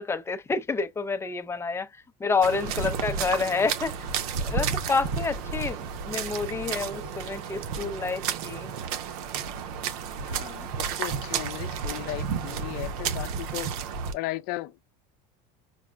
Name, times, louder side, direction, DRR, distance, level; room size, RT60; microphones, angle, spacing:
voice 1, 0.0-1.9 2.2-3.9 4.4-8.7, left 4 dB, 15° left, 0.5 m, -28 dB
sound 1, 2.4-14.1, right 6 dB, 80° right, 0.7 m, -32 dB
voice 2, 10.2-13.7 14.1-14.8, left 17 dB, 55° left, 0.6 m, -36 dB
6.0 x 2.1 x 2.3 m
supercardioid pair, 135°, 19 cm